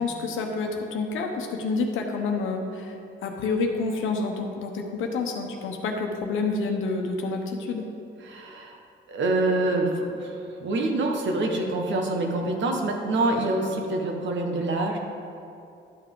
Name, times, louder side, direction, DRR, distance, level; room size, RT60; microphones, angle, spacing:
voice 1, 0.0-3.0 3.2-7.8, left 3 dB, 85° left, 3 dB, 1.0 m, -28 dB
voice 2, 8.2-8.8 9.1-15.0, right 2 dB, 70° right, 2 dB, 1.3 m, -26 dB
11.5 x 5.9 x 3.8 m, 2.6 s
cardioid pair, 90°, 20 cm